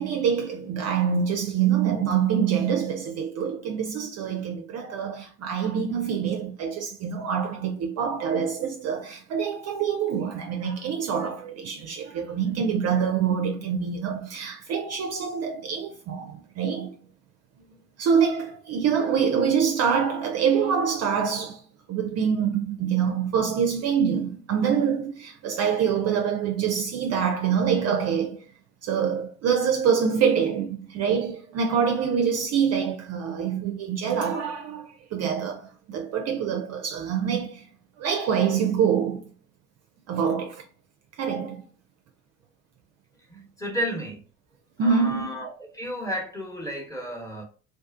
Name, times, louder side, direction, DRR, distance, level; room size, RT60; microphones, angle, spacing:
voice 1, 0.0-16.9 18.0-21.6 21.9-28.4 28.8-37.7 38.0-39.2 40.1-40.6 41.2-41.7 44.8-45.3, right 7 dB, 40° right, 0.4 m, -25 dB
voice 2, 43.3-44.2 44.8-47.4, equal, 10° left, 1.0 m, -32 dB
2.5 x 2.3 x 2.4 m
hypercardioid pair, 70°, 39 cm